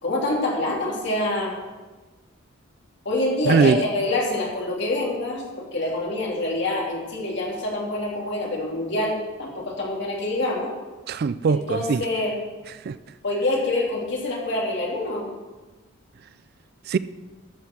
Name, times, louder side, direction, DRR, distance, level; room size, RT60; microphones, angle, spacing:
voice 1, 0.0-1.6 3.0-10.7 11.5-12.3 13.2-15.3, left 2 dB, 55° left, 3.1 m, -26 dB
voice 2, 3.4-3.8 11.1-12.0 12.9-13.0 16.9-17.0, right 5 dB, 45° right, 0.3 m, -20 dB
12.5 x 7.3 x 6.1 m
head